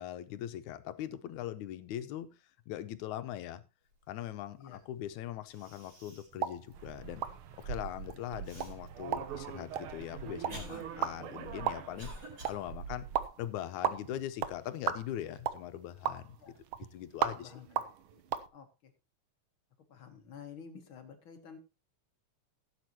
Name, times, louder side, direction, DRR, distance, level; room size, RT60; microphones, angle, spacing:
voice 1, 0.0-2.3 2.7-3.6 4.1-7.2 7.6-12.1 12.5-13.1 13.4-16.6 16.9-17.5, left 12 dB, 85° left, 12 dB, 2.2 m, -41 dB
Cough, 5.1-5.2 5.5-6.4 6.9-7.0 8.4-8.7 9.5-12.6, equal, 30° right, 4.6 m, -49 dB
sound 1, 6.3-18.5, right 9 dB, 85° right, 1.1 m, -38 dB
sound 2, 6.7-13.3, right 8 dB, 65° right, 1.4 m, -44 dB
voice 2, 17.2-17.8 18.1-18.2 18.5-18.9 19.9-21.6, left 7 dB, 50° left, 6 dB, 1.8 m, -51 dB
16.0 x 8.3 x 3.0 m, 0.27 s
omnidirectional pair, 3.4 m